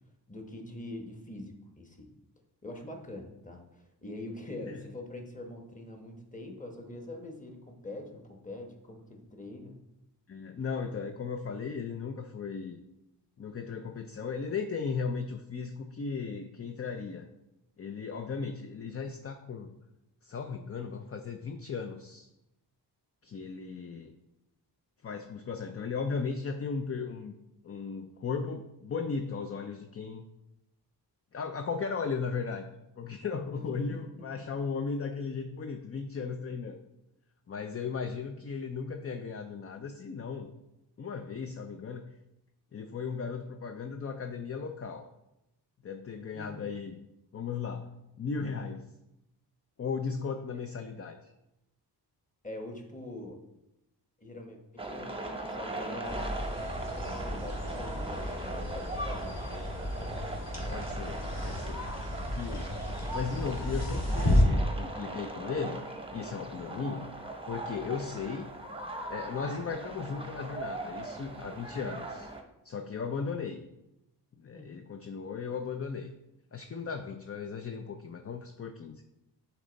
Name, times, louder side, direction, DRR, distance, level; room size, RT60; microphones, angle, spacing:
voice 1, 0.3-2.1 2.6-9.8 33.5-34.3 46.3-46.7 52.4-53.4 54.2-56.3 56.9-59.9 74.5-74.8, left 1 dB, 20° left, 2 dB, 1.1 m, -44 dB
voice 2, 10.3-12.8 13.4-17.3 17.8-19.8 20.2-22.3 23.2-24.1 25.0-27.3 27.6-30.2 31.3-32.6 33.0-36.8 37.5-40.5 41.0-42.1 42.7-45.1 45.8-47.0 47.3-47.9 48.2-48.9 49.8-51.3 60.7-61.9 62.3-62.8 63.1-65.8 66.1-67.1 67.5-68.5 69.1-72.3 72.6-73.6 74.4-76.1 76.5-79.0, left 5 dB, 35° left, 6 dB, 0.5 m, -36 dB
sound 1, 54.8-72.4, right 2 dB, 15° right, 0.8 m, -39 dB
sound 2, 56.0-64.4, left 1 dB, 60° left, 2.3 m, -32 dB
10.0 x 4.2 x 4.0 m, 0.89 s
wide cardioid pair, 135°, 42 cm